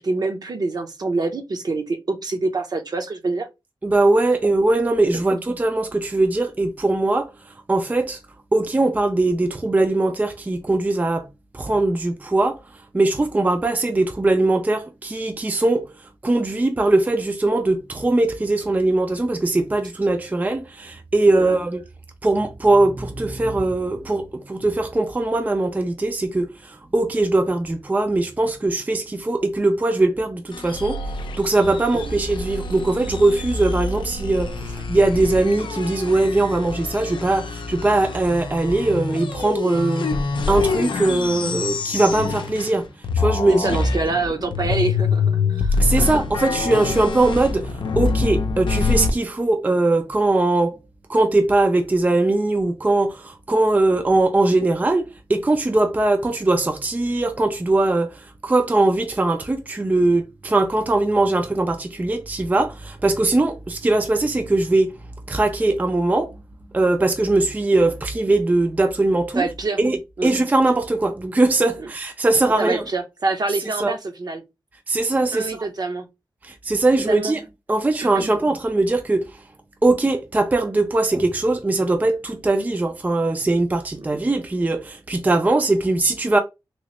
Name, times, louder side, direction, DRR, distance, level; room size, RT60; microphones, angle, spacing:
voice 1, 0.0-3.5 5.3-5.4 21.4-21.5 32.0-32.1 43.5-46.1 69.3-69.8 70.2-70.3 71.8-71.9 72.6-74.4 75.3-76.1 77.1-77.3 78.1-78.4 83.5-83.6, right 3 dB, 55° right, 0.7 m, -26 dB
voice 2, 3.8-8.2 8.5-11.3 11.5-12.6 12.9-15.9 16.2-21.8 22.2-31.0 31.4-40.1 40.5-42.9 43.1-43.7 45.8-50.8 51.1-64.9 65.3-66.3 66.7-69.4 69.8-72.8 73.8-74.0 74.9-75.7 76.4-77.4 77.7-79.4 79.8-86.4, right 2 dB, 20° right, 0.4 m, -20 dB
sound 1, 30.5-42.8 43.0-49.1, left 4 dB, 75° left, 0.5 m, -25 dB
3.0 x 2.9 x 3.0 m
wide cardioid pair, 95°, 8 cm